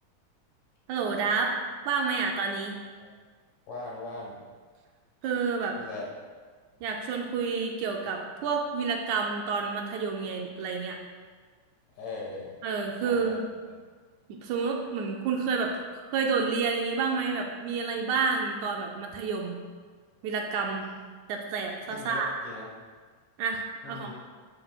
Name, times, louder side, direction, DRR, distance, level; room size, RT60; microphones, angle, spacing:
voice 1, 0.9-1.6 1.9-2.8 5.2-5.8 6.8-11.0 12.6-13.4 14.3-15.7 16.1-19.6 20.2-20.9 21.3-22.3 23.4-24.1, right 5 dB, 75° right, 1 dB, 1.8 m, -29 dB
voice 2, 3.7-4.4 5.8-6.1 12.0-12.5 13.0-13.4 21.9-22.7 23.8-24.1, left 3 dB, 75° left, -3 dB, 2.8 m, -39 dB
7.7 x 7.6 x 2.3 m, 1.5 s
omnidirectional pair, 3.7 m